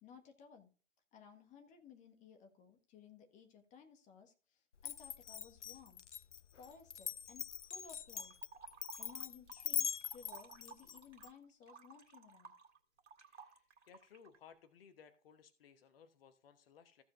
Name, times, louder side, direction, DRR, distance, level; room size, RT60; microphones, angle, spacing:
voice 1, 0.0-0.7 1.1-6.0 6.6-8.4 9.0-12.5, left 6 dB, 20° left, 1.5 m, -59 dB
Glass, 4.8-11.3, left 8 dB, 75° left, 0.6 m, -42 dB
sound 1, 8.2-9.7 9.9-14.4, right 5 dB, 70° right, 2.0 m, -56 dB
voice 2, 13.2-17.0, left 7 dB, 50° left, 1.1 m, -62 dB
15.0 x 7.4 x 2.5 m
figure-of-eight pair, 115°, 36 cm